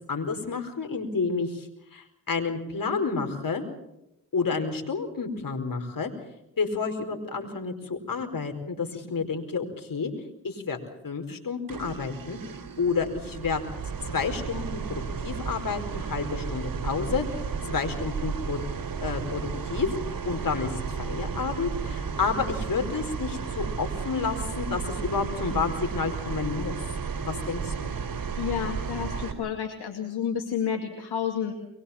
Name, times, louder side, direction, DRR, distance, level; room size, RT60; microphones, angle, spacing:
voice 1, 0.1-3.6 4.3-6.1 6.6-10.1 10.4-10.8 11.0-12.4 12.8-13.6 14.1-17.2 17.7-18.6 19.0-19.9 20.2-26.7 27.2-27.9, left 5 dB, 55° left, 5 dB, 4.7 m, -30 dB
sound 1, 11.7-29.3, right 6 dB, 55° right, 3.5 m, -33 dB
voice 2, 28.4-31.5, left 8 dB, 70° left, 4 dB, 2.4 m, -30 dB
23.5 x 21.5 x 7.2 m, 0.85 s
supercardioid pair, 40°, 39 cm